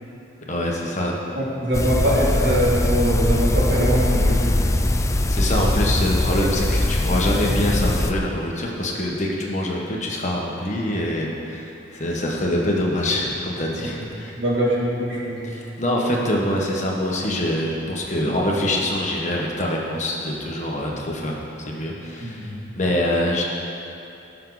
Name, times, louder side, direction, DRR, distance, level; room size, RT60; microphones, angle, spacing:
voice 1, 0.5-1.2 5.3-14.3 15.4-23.4, left 1 dB, 40° left, -2 dB, 1.6 m, -25 dB
voice 2, 1.3-4.5 14.3-15.4 22.2-22.6, right 1 dB, 60° right, -6 dB, 3.0 m, -22 dB
sound 1, 1.7-8.1, left 1 dB, 15° left, 0.4 m, -21 dB
19.5 x 6.7 x 4.1 m, 2.8 s
head